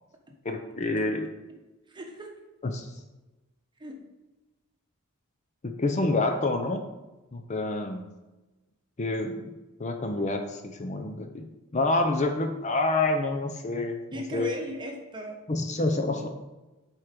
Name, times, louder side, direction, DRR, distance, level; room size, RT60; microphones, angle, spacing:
voice 1, 0.4-1.3 2.6-2.9 5.6-6.8 7.3-8.1 9.0-9.5 9.8-11.5 11.7-14.0 14.3-14.5 15.5-16.3, left 2 dB, 35° left, 5 dB, 0.6 m, -27 dB
voice 2, 1.9-2.3 3.8-4.1 14.1-15.4, equal, 20° right, 2 dB, 1.1 m, -37 dB
7.8 x 4.6 x 5.1 m, 1.1 s
head